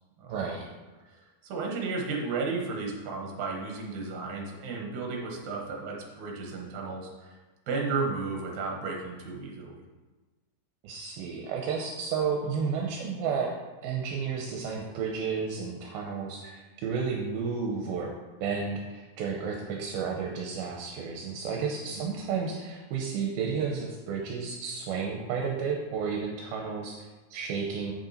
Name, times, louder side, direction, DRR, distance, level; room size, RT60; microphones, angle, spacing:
voice 1, 0.3-0.7 10.8-13.5 13.8-18.1 18.4-27.9, right 5 dB, 80° right, 0 dB, 2.5 m, -32 dB
voice 2, 1.4-7.4 7.7-9.8 21.9-22.0, right 4 dB, 60° right, -1 dB, 2.5 m, -33 dB
8.5 x 6.5 x 4.3 m, 1.2 s
omnidirectional pair, 4.5 m